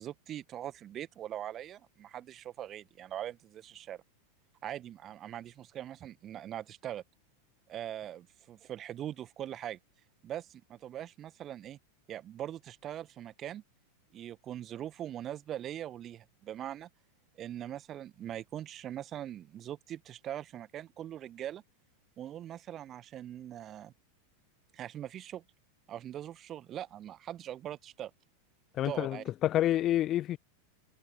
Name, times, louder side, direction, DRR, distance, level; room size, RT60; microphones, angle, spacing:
voice 1, 0.0-4.0 4.6-7.0 7.7-9.8 10.2-11.8 12.1-13.6 14.1-16.9 17.3-21.6 22.2-23.9 24.7-25.4 25.9-28.1 28.8-29.2, right 11 dB, 30° right, 1.1 m, -41 dB
voice 2, 28.8-30.4, left 13 dB, 30° left, 0.7 m, -28 dB
figure-of-eight pair, 90°, 0 cm